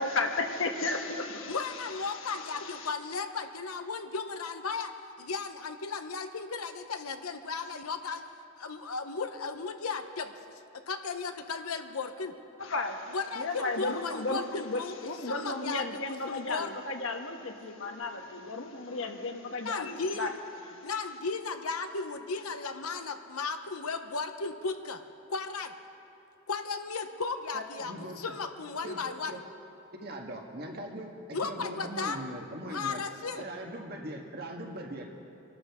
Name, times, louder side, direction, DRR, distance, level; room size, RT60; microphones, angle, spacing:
voice 1, 0.0-2.9 12.6-20.3 20.8-20.9, left 3 dB, 65° left, 4 dB, 1.3 m, -34 dB
voice 2, 1.5-4.9 5.2-8.2 8.6-10.3 10.9-12.3 13.1-14.9 15.2-15.8 16.3-16.8 17.9-18.0 19.6-20.3 20.8-25.0 25.3-25.7 26.5-29.4 31.3-32.2 32.7-33.4, left 4 dB, 90° left, 7 dB, 0.9 m, -35 dB
voice 3, 27.5-28.2 28.8-29.0 29.3-29.4 30.0-33.0 33.4-35.1, right 1 dB, 45° right, 1 dB, 1.6 m, -40 dB
25.0 x 12.5 x 3.7 m, 2.9 s
head